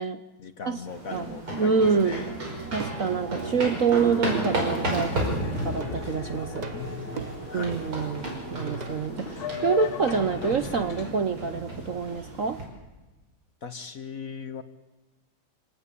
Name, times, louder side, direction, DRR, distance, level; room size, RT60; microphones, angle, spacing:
voice 1, 0.4-2.3 6.7-7.8 9.5-9.6 13.6-14.6, left 6 dB, 50° left, 11 dB, 1.3 m, -39 dB
sound 1, 0.9-12.6, right 2 dB, 90° right, 6.2 m, -33 dB
voice 2, 1.6-2.2 2.7-5.3 5.6-6.7 7.5-12.6, right 5 dB, 50° right, 10 dB, 1.0 m, -26 dB
Plucked string instrument, 2.6-9.1, right 5 dB, 30° right, 0.9 m, -40 dB
Boat Water vehicle, 4.5-11.1, left 6 dB, 80° left, 2.7 m, -38 dB
26.5 x 17.5 x 8.4 m, 1.2 s
omnidirectional pair, 2.2 m